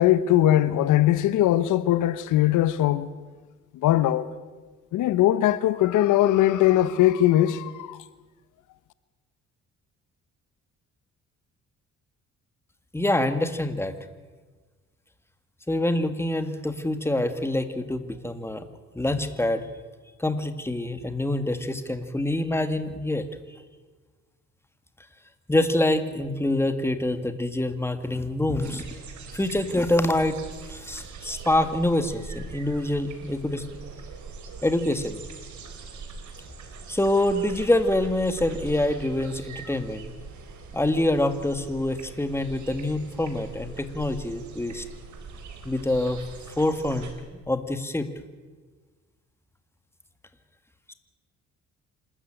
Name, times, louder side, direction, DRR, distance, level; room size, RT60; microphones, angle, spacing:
voice 1, 0.0-3.1 3.7-4.3 4.9-8.0, left 13 dB, 85° left, 0.9 m, -20 dB
voice 2, 12.9-13.9 15.7-18.7 18.9-19.7 20.2-23.3 25.5-28.8 29.3-30.4 30.7-33.6 34.6-35.2 36.9-40.1 40.7-44.9 45.6-46.2 46.6-47.1 47.5-48.1 50.9-51.0, left 1 dB, 10° left, 1.9 m, -25 dB
sound 1, 28.6-47.1, right 4 dB, 70° right, 4.0 m, -42 dB
26.5 x 13.5 x 9.0 m
cardioid pair, 90°, 30 cm